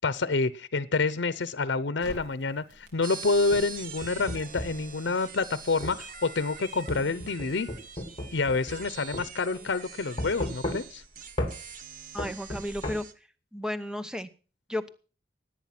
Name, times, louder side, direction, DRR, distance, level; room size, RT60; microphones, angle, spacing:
voice 1, 0.0-7.7 8.3-11.0, left 3 dB, 90° left, 16 dB, 0.7 m, -28 dB
Crackle, 2.0-8.1, equal, 70° right, 3.8 m, -52 dB
sound 1, 3.0-13.1, right 5 dB, 45° right, 1.2 m, -44 dB
sound 2, 3.3-4.8 5.8-6.0 6.9-8.9 9.1-9.3 10.2-11.0 11.4-11.6 12.2-13.0, left 1 dB, 30° left, 2.3 m, -34 dB
voice 2, 12.1-13.0 13.5-14.3 14.7-14.9, left 1 dB, 5° right, 11 dB, 0.8 m, -33 dB
18.0 x 8.9 x 5.9 m, 0.38 s
head